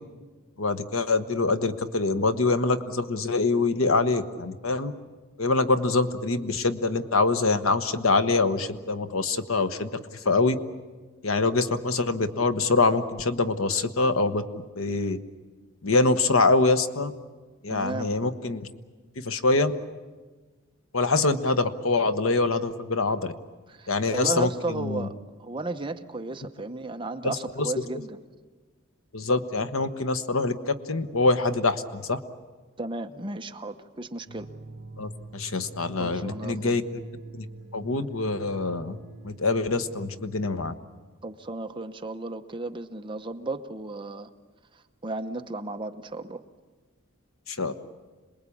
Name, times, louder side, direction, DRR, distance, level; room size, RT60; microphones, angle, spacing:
voice 1, 0.6-4.9 5.4-10.5 11.2-15.2 15.8-17.1 17.6-18.7 19.2-19.7 20.9-23.3 23.9-25.1 27.2-27.7 29.1-32.2 35.0-36.8 37.3-37.5 37.7-39.0 39.2-40.7 47.5-47.7, left 3 dB, 75° left, 10 dB, 1.1 m, -25 dB
voice 2, 17.7-18.1 23.7-28.2 32.8-34.5 36.0-36.8 41.2-44.3 44.7-46.4, right 2 dB, 20° right, 6 dB, 0.9 m, -34 dB
sound 1, 34.3-40.1, right 3 dB, 45° right, 1.2 m, -44 dB
27.0 x 20.5 x 8.6 m, 1.4 s
head